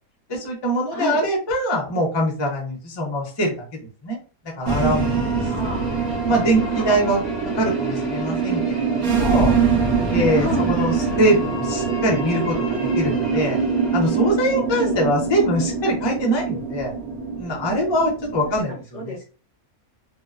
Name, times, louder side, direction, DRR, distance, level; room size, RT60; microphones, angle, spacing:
voice 1, 0.3-3.7 4.0-4.2 4.6-5.4 6.3-7.2 7.6-9.5 10.1-13.6 13.9-16.9 17.3-19.1, equal, 25° left, -1 dB, 0.6 m, -23 dB
voice 2, 0.9-1.2 5.4-6.1 6.7-7.1 10.3-10.7 14.8-15.0 18.7-19.2, left 3 dB, 60° left, 0 dB, 0.9 m, -31 dB
sound 1, 4.6-14.5, left 1 dB, 25° right, 0.9 m, -39 dB
sound 2, 4.7-18.6, right 5 dB, 75° right, 1.0 m, -24 dB
2.7 x 2.2 x 2.4 m, 0.36 s
omnidirectional pair, 1.6 m